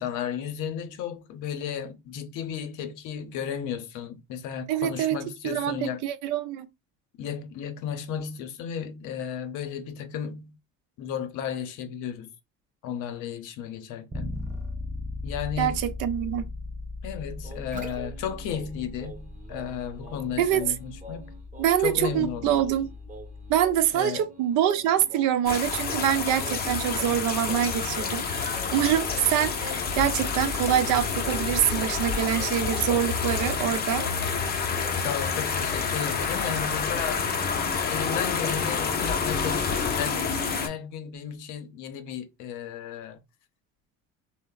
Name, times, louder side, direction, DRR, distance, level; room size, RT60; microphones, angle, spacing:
voice 1, 0.0-6.0 7.2-10.5 11.0-12.3 12.8-14.5 15.2-15.9 17.0-21.3 21.8-22.6 23.9-24.2 27.1-27.3 31.4-31.7 35.0-37.5 37.9-43.2, left 8 dB, 70° left, 0.7 m, -34 dB
voice 2, 4.7-5.2 5.4-6.7 15.6-15.7 16.0-16.4 20.4-20.6 21.6-22.9 23.5-34.1, right 11 dB, 75° right, 0.5 m, -25 dB
Bass guitar, 14.1-24.0, left 2 dB, 10° right, 0.3 m, -38 dB
sound 1, 17.4-34.4 34.8-35.2, equal, 25° right, 0.8 m, -45 dB
sound 2, 25.5-40.7, left 5 dB, 30° left, 0.6 m, -28 dB
3.0 x 2.0 x 2.2 m
supercardioid pair, 100°, 31 cm